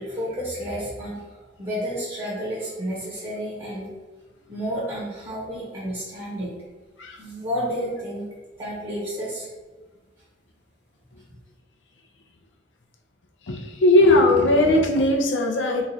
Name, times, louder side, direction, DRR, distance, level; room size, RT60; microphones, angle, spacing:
voice 1, 0.0-3.9 4.5-6.5 7.2-8.3 8.6-9.5, equal, 25° right, -8 dB, 1.0 m, -31 dB
voice 2, 13.5-15.9, left 1 dB, 75° left, 2 dB, 0.5 m, -18 dB
3.1 x 2.4 x 4.0 m, 1.3 s
head